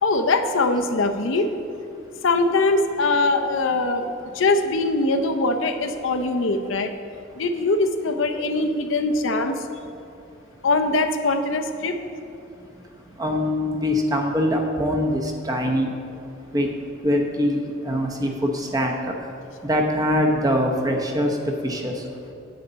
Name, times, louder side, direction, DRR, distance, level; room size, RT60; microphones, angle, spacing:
voice 1, 0.0-1.5 2.2-4.1 4.3-6.9 7.4-9.7 10.6-12.0, left 2 dB, 70° left, 6 dB, 0.6 m, -22 dB
voice 2, 13.2-15.9 16.5-16.7 17.0-19.1 19.6-21.4 21.6-22.0, equal, 20° right, 2 dB, 0.8 m, -23 dB
9.4 x 8.9 x 4.0 m, 2.6 s
head